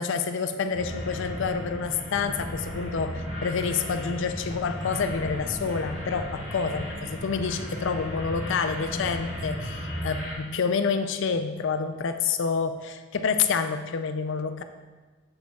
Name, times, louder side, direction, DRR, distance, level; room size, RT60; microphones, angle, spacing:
voice 1, 0.0-14.6, left 5 dB, 65° left, 9 dB, 0.4 m, -28 dB
sound 1, 0.7-10.3, equal, 70° right, 1.8 m, -35 dB
7.6 x 6.2 x 2.3 m, 1.3 s
head